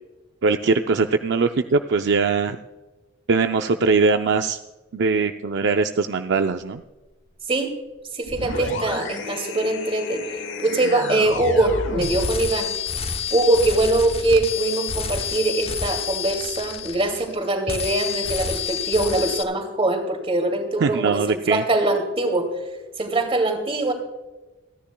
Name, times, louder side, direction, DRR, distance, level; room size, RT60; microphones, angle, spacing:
voice 1, 0.4-2.6 3.3-4.6 4.9-6.8 20.8-21.6, right 4 dB, 60° right, 7 dB, 0.5 m, -21 dB
voice 2, 8.1-10.2 10.6-12.7 13.3-22.5 23.0-23.9, right 2 dB, 30° right, 5 dB, 2.4 m, -22 dB
sound 1, 8.3-12.4, left 3 dB, 65° left, 1.3 m, -31 dB
sound 2, 12.0-17.4 17.7-19.4, left 7 dB, 30° left, 0.8 m, -29 dB
27.5 x 10.0 x 2.2 m, 1.2 s
head